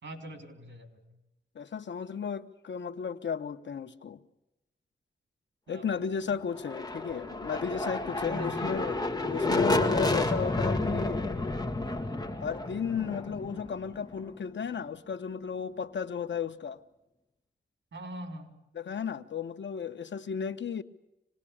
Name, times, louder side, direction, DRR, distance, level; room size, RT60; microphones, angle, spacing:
voice 1, 0.0-1.0 5.7-6.4 8.2-8.8 17.9-18.5, right 1 dB, 80° right, 3.9 m, -42 dB
voice 2, 1.5-4.2 5.7-9.0 9.3-11.5 12.4-16.8 18.7-20.8, left 6 dB, 80° left, 1.2 m, -34 dB
sound 1, 6.5-14.3, left 2 dB, 20° left, 1.9 m, -30 dB
25.5 x 19.5 x 8.7 m
wide cardioid pair, 110°, 19 cm